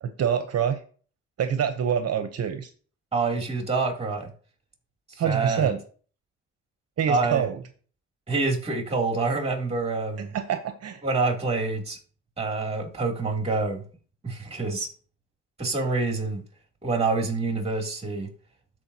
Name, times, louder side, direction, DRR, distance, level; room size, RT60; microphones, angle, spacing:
voice 1, 0.0-0.8 1.4-2.7 5.2-5.8 7.0-7.6 10.2-11.0, right 8 dB, 55° right, 8 dB, 0.8 m, -26 dB
voice 2, 3.1-4.3 5.2-5.7 7.1-7.5 8.3-10.3 11.0-12.0 12.4-13.8 14.2-14.9 15.6-16.4 16.8-18.3, right 3 dB, 20° right, 1 dB, 2.8 m, -26 dB
13.0 x 4.8 x 2.8 m, 0.41 s
cardioid pair, 90°, 30 cm